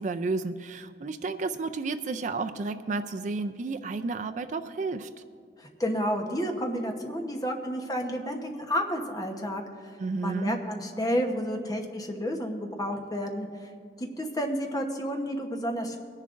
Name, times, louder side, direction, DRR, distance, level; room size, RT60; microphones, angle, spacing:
voice 1, 0.0-5.1 10.0-10.6, right 3 dB, 45° right, 9 dB, 0.4 m, -32 dB
voice 2, 5.6-9.6 10.2-13.7 14.0-16.0, equal, 20° left, 3 dB, 0.9 m, -31 dB
22.5 x 10.5 x 2.5 m, 2.2 s
head